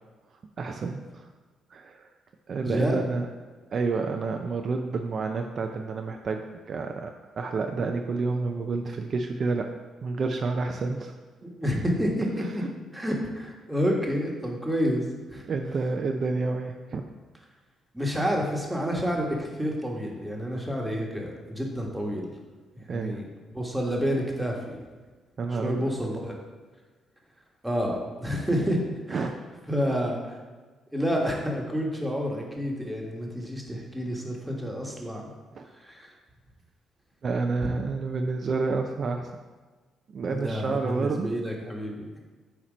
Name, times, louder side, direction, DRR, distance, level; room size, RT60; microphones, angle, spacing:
voice 1, 0.6-1.3 1.7-2.1 2.5-3.3 3.7-9.7 10.0-11.1 12.4-12.7 15.5-17.0 22.9-23.2 25.4-25.9 29.1-29.3 35.5-35.7 37.2-39.3 40.1-41.3, right 4 dB, 50° right, 4 dB, 0.5 m, -29 dB
voice 2, 2.6-3.0 11.4-12.6 12.9-15.0 15.3-15.4 17.9-22.3 22.9-23.2 23.5-24.8 25.6-26.3 27.6-28.8 29.1-29.2 29.7-30.4 30.9-35.2 35.8-36.1 40.2-42.2, equal, 5° right, -1 dB, 1.4 m, -29 dB
8.5 x 3.0 x 5.0 m, 1.3 s
cardioid pair, 90°, 0 cm